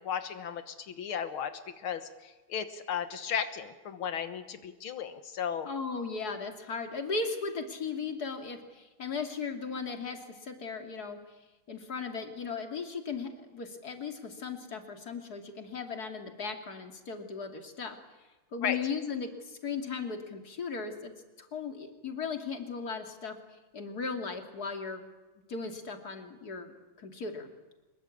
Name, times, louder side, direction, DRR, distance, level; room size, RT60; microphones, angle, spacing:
voice 1, 0.0-1.5 1.8-5.7 18.6-18.8, left 8 dB, 80° left, 10 dB, 2.1 m, -35 dB
voice 2, 5.6-11.2 11.7-18.0 18.5-21.1 21.4-23.3 23.7-25.1 25.5-27.5, left 5 dB, 45° left, 5 dB, 3.0 m, -37 dB
25.5 x 22.5 x 8.6 m, 1.1 s
omnidirectional pair, 2.3 m